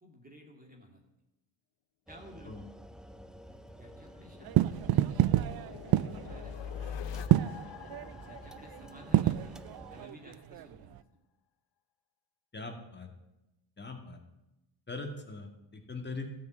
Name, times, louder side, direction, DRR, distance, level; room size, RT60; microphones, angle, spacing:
voice 1, 0.0-1.0 2.1-2.5 3.8-6.8 8.2-9.6 9.9-10.9, equal, 20° right, 0 dB, 2.2 m, -54 dB
sound 1, 2.1-10.1, equal, ahead, 0.5 m, -52 dB
sound 2, 3.3-10.1, left 8 dB, 65° left, 0.9 m, -45 dB
sound 3, 4.4-11.0, right 13 dB, 50° right, 0.5 m, -28 dB
voice 2, 12.5-13.1 13.8-14.2 14.9-16.3, left 3 dB, 20° left, 3 dB, 2.2 m, -41 dB
13.0 x 6.0 x 8.8 m, 0.95 s
cardioid pair, 80°, 47 cm